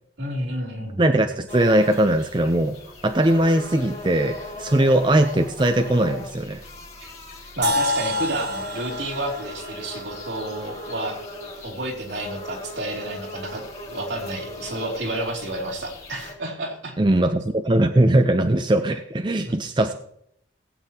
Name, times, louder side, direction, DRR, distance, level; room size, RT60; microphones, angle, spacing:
voice 1, 0.2-1.0 7.6-11.2 11.6-17.0 19.4-19.6, right 1 dB, 80° right, -1 dB, 2.9 m, -30 dB
voice 2, 1.0-2.8 3.0-6.6 17.0-19.9, right 1 dB, 25° right, 7 dB, 0.5 m, -20 dB
sound 1, 1.5-16.3, left 2 dB, 35° left, 2.3 m, -39 dB
sound 2, 7.6-11.5, left 1 dB, 60° right, 1.5 m, -29 dB
18.5 x 8.7 x 2.9 m, 0.70 s
head